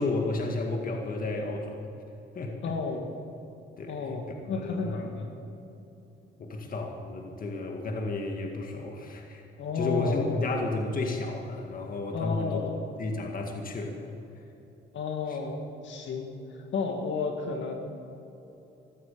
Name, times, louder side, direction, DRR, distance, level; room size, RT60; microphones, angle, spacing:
voice 1, 0.0-1.8 2.4-2.6 3.8-4.2 4.6-5.2 6.4-9.4 9.7-12.6 13.0-14.1 15.3-15.4, left 2 dB, 45° left, 2 dB, 2.0 m, -32 dB
voice 2, 2.6-3.1 3.9-5.3 9.6-10.4 12.1-12.8 14.9-16.3 16.7-17.7, left 4 dB, 70° left, 3 dB, 2.2 m, -32 dB
15.5 x 12.5 x 7.0 m, 2.9 s
cardioid pair, 90°, 20 cm